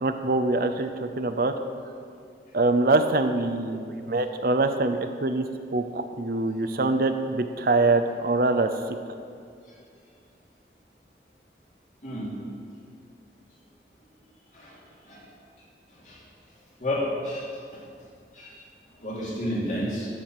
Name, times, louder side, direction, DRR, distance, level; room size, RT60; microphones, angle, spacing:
voice 1, 0.0-1.5 2.5-5.4 5.7-8.7, right 2 dB, 55° right, 8 dB, 0.6 m, -24 dB
voice 2, 16.8-17.5 18.3-18.5 19.0-20.1, left 1 dB, 45° left, -6 dB, 3.0 m, -30 dB
13.0 x 4.9 x 7.4 m, 2.3 s
head